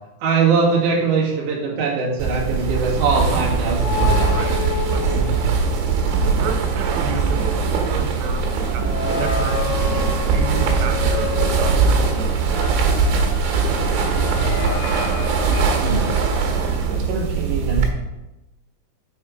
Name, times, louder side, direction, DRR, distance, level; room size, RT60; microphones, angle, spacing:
voice 1, 0.2-4.3 15.8-16.1 16.9-17.9, right 4 dB, 50° right, -5 dB, 2.7 m, -21 dB
sound 1, 2.2-17.9, right 5 dB, 70° right, 3.6 m, -21 dB
sound 2, 3.6-6.1 6.4-16.7, left 6 dB, 80° left, 2.9 m, -31 dB
voice 2, 4.0-5.5 6.2-12.5, right 5 dB, 90° right, 4 dB, 3.5 m, -32 dB
7.9 x 5.5 x 5.3 m, 1.0 s
omnidirectional pair, 6.0 m